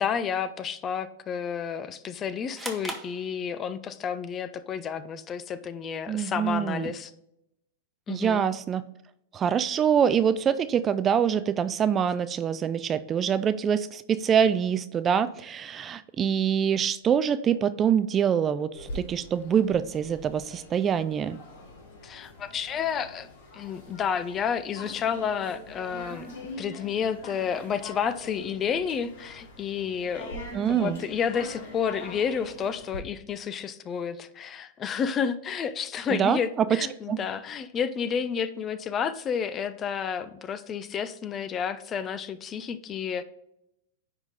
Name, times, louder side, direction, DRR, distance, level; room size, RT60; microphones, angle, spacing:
voice 1, 0.0-7.1 8.1-8.4 22.0-26.3 26.6-30.4 30.7-43.2, left 7 dB, 30° left, 14 dB, 0.5 m, -30 dB
sound 1, 2.5-4.0, right 2 dB, 10° right, 1.1 m, -39 dB
voice 2, 6.1-6.9 8.1-8.8 9.3-21.4 30.5-31.0 36.1-36.8 37.1-37.2, right 8 dB, 25° right, 14 dB, 0.4 m, -25 dB
sound 2, 18.7-33.0, left 1 dB, 70° left, 2.9 m, -43 dB
9.8 x 3.7 x 4.1 m, 0.82 s
hypercardioid pair, 115°, 0 cm